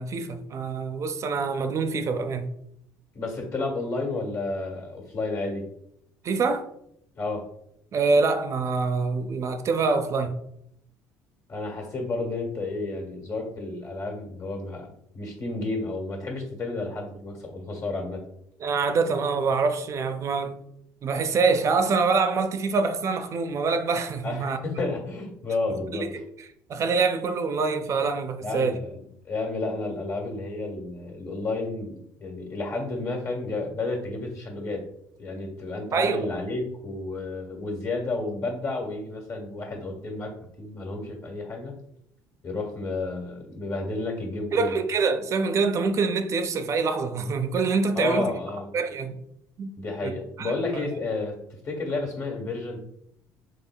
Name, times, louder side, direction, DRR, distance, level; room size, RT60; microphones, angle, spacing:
voice 1, 0.0-2.5 6.2-6.7 7.9-10.4 18.6-20.5 21.0-24.6 25.9-26.2 26.7-28.8 35.9-36.3 44.5-48.3 48.7-49.2 49.6-49.7 50.0-50.1 50.4-50.6, right 4 dB, 45° right, 0.4 m, -25 dB
voice 2, 3.1-5.7 7.1-7.5 11.5-18.2 24.2-26.1 28.4-29.0 29.3-34.8 35.2-41.7 42.4-44.7 47.9-48.7 49.8-51.4 51.6-52.8, left 2 dB, 55° left, 1.4 m, -31 dB
3.6 x 3.4 x 2.3 m
supercardioid pair, 85°, 7 cm